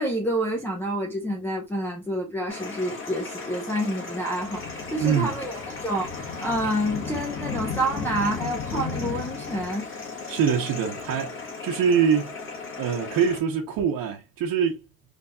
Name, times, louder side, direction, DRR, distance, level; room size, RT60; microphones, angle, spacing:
voice 1, 0.0-9.9, right 1 dB, 5° left, 0.8 m, -28 dB
sound 1, 2.5-13.4, left 4 dB, 40° left, 1.5 m, -35 dB
voice 2, 5.0-5.3 10.3-12.4 12.8-14.8, right 7 dB, 80° right, 0.9 m, -24 dB
4.0 x 3.4 x 2.2 m
cardioid pair, 170°, 33 cm